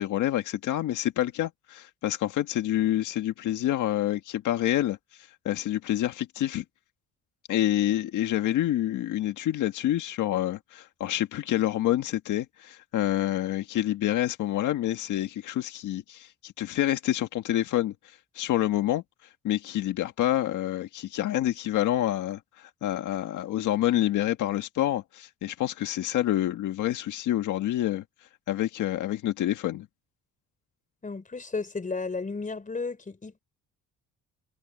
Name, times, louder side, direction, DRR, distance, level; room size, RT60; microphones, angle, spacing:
voice 1, 0.0-6.6 7.5-17.9 18.3-19.0 19.4-28.0 28.5-29.9, left 13 dB, 80° left, 1.6 m, -27 dB
voice 2, 31.0-33.4, left 4 dB, 25° left, 4.5 m, -33 dB
cardioid pair, 90°, 30 cm